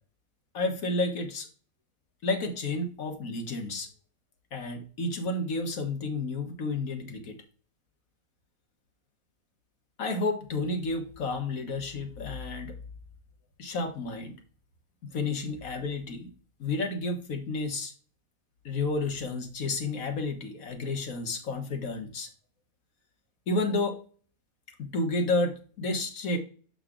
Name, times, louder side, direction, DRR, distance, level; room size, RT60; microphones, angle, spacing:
voice 1, 0.5-1.5 2.2-3.9 4.5-7.4 10.0-12.8 13.6-14.4 15.0-16.3 16.6-17.9 18.7-22.3 23.5-24.0 24.8-26.4, left 2 dB, 70° left, 5 dB, 1.7 m, -31 dB
7.3 x 4.0 x 3.6 m, 0.40 s
omnidirectional pair, 1.5 m